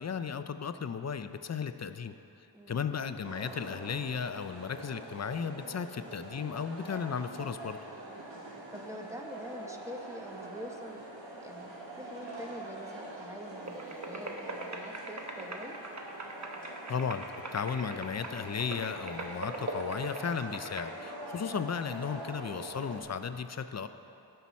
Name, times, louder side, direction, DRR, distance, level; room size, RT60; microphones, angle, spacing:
voice 1, 0.0-2.1 2.7-7.8 16.9-17.3 17.5-23.9, left 6 dB, 40° left, 10 dB, 0.5 m, -35 dB
voice 2, 2.5-2.9 8.7-11.1 11.3-15.8, equal, 5° right, 2 dB, 1.0 m, -45 dB
sound 1, 3.2-23.0, right 1 dB, 80° right, 1.4 m, -44 dB
sound 2, 13.7-20.8, right 2 dB, 40° right, 1.0 m, -42 dB
15.5 x 5.7 x 4.2 m, 3.0 s
wide cardioid pair, 55°, 44 cm